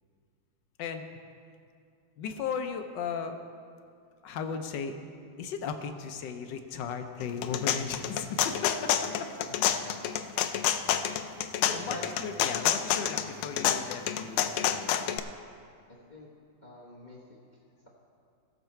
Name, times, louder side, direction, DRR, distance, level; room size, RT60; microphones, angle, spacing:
voice 1, 2.2-3.4 4.2-5.0 5.4-9.5 11.7-15.2, left 6 dB, 70° left, 7 dB, 1.3 m, -36 dB
sound 1, 7.2-15.2, left 10 dB, 90° left, 1.4 m, -28 dB
voice 2, 9.6-9.9 11.6-12.1 16.1-16.3 16.6-17.4, left 1 dB, 30° left, -4 dB, 1.0 m, -43 dB
17.5 x 6.8 x 4.4 m, 2.3 s
omnidirectional pair, 2.2 m